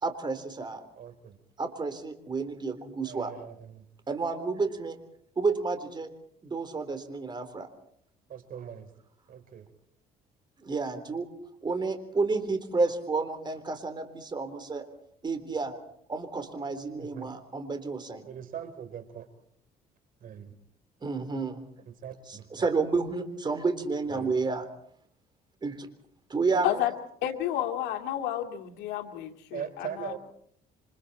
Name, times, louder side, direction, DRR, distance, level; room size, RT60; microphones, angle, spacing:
voice 1, 0.0-0.8 1.6-3.3 4.1-5.0 5.4-6.1 6.4-7.7 10.6-11.3 11.6-14.8 15.2-15.7 16.1-18.3 21.0-21.7 22.3-24.7 25.6-25.9 26.3-26.8, right 4 dB, 25° right, 8 dB, 3.7 m, -30 dB
voice 2, 1.0-1.4 3.1-3.8 8.3-8.9 9.3-9.7 17.0-17.3 18.3-19.3 20.2-20.5 22.0-22.6 24.1-24.3 29.5-30.2, right 8 dB, 55° right, 10 dB, 3.9 m, -41 dB
voice 3, 27.2-30.1, left 12 dB, 90° left, 5 dB, 2.5 m, -31 dB
28.0 x 25.5 x 4.3 m, 0.65 s
cardioid pair, 110°, 17 cm